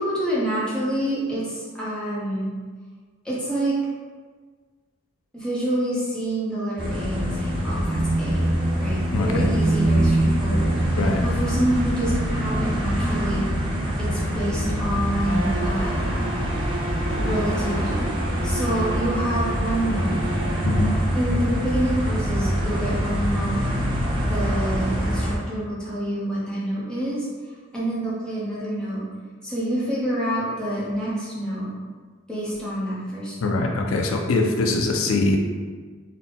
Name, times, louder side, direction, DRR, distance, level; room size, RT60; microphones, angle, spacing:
voice 1, 0.0-2.5 3.2-3.8 5.3-8.5 8.8-13.5 14.0-16.3 17.1-18.1 18.4-20.2 21.1-29.1 29.4-31.7 32.3-33.5, right 1 dB, 5° left, -8 dB, 0.8 m, -27 dB
sound 1, 6.8-25.4, equal, 25° right, 0.6 m, -24 dB
voice 2, 9.1-9.5 11.0-11.2 20.7-20.9 33.4-35.4, left 2 dB, 75° left, 3 dB, 0.4 m, -22 dB
Bowed string instrument, 15.2-21.0, right 1 dB, 60° right, 0.7 m, -33 dB
3.7 x 2.1 x 3.8 m, 1.5 s
head